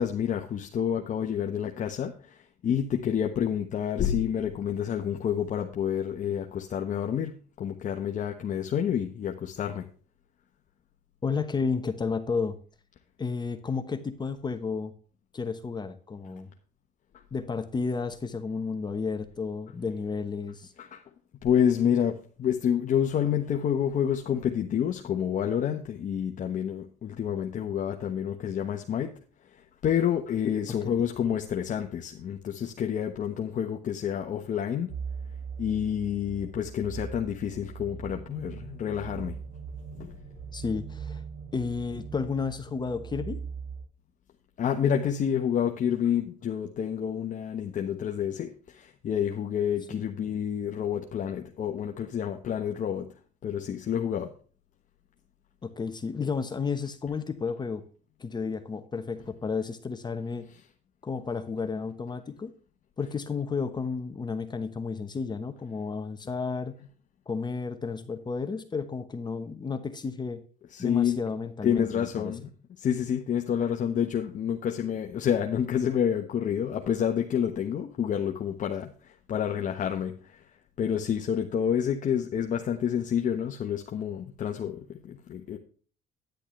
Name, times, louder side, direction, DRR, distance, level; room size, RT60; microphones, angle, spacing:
voice 1, 0.0-9.9 20.8-21.0 21.4-29.2 29.8-34.9 35.6-39.3 40.0-40.2 44.6-53.1 53.4-54.3 60.6-60.7 70.7-71.2 71.6-72.5 72.8-80.4 80.8-85.6, left 8 dB, 50° left, 3 dB, 1.2 m, -28 dB
voice 2, 11.2-12.6 13.2-14.9 15.3-16.5 17.3-20.7 40.5-41.2 41.5-43.4 49.9-50.0 55.6-57.8 58.2-60.5 61.0-62.5 63.0-66.7 67.3-70.4 70.8-72.3, left 5 dB, 25° left, 8 dB, 1.1 m, -32 dB
sound 1, 34.9-43.8, right 6 dB, 85° right, 3.6 m, -40 dB
10.5 x 10.0 x 3.2 m, 0.41 s
cardioid pair, 110°, 17 cm